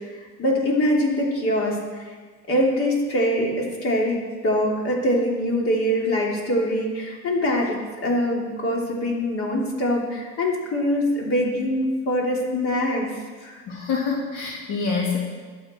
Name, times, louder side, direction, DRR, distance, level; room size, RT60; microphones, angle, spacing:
voice 1, 0.4-2.1 2.5-13.6, equal, 40° left, -2 dB, 3.0 m, -23 dB
voice 2, 13.7-15.2, left 5 dB, 70° left, -2 dB, 2.4 m, -26 dB
21.0 x 7.8 x 4.4 m, 1.5 s
cardioid pair, 135°, 34 cm